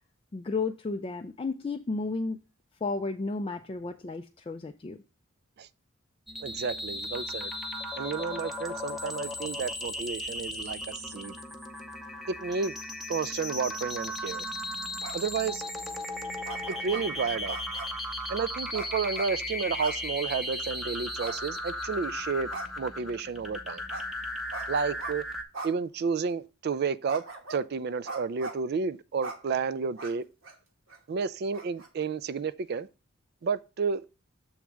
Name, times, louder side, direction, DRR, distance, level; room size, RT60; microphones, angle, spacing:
voice 1, 0.3-2.4 2.8-5.0, left 3 dB, 25° left, 0.3 m, -33 dB
sound 1, 6.3-25.4, left 1 dB, ahead, 0.7 m, -36 dB
voice 2, 6.4-7.5 8.0-11.3 12.3-12.7 13.1-14.4 15.1-15.6 16.7-17.6 18.3-22.5 22.8-23.8 24.7-25.2 25.6-27.2 27.5-30.3 31.1-32.9 33.4-34.0, right 5 dB, 50° right, 0.3 m, -31 dB
sound 2, 15.0-15.4 16.4-17.0 17.5-18.0 18.7-19.3 19.8-20.0 20.3-20.4 21.2-21.9 22.5-22.9 23.9-24.0 24.5-25.1 25.5-25.7 26.2-26.3 27.1-27.6 28.0-28.6 29.2-29.4 30.0-30.1 30.4-30.5 30.9-31.0 31.5-31.9, right 3 dB, 70° right, 1.2 m, -40 dB
7.2 x 3.4 x 6.1 m
head